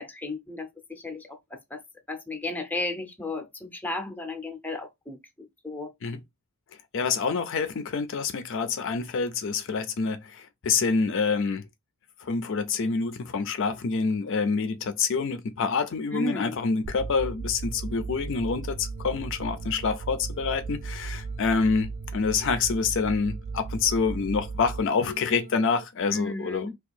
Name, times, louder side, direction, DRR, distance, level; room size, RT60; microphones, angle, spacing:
voice 1, 0.0-1.4 1.7-1.8 2.1-5.2 5.6-5.9 16.1-16.5 26.1-26.7, left 2 dB, 5° left, 0.6 m, -33 dB
voice 2, 6.9-11.6 12.2-26.7, left 5 dB, 55° left, 0.4 m, -27 dB
sound 1, 16.8-25.8, right 4 dB, 45° right, 0.3 m, -36 dB
2.8 x 2.3 x 4.1 m
head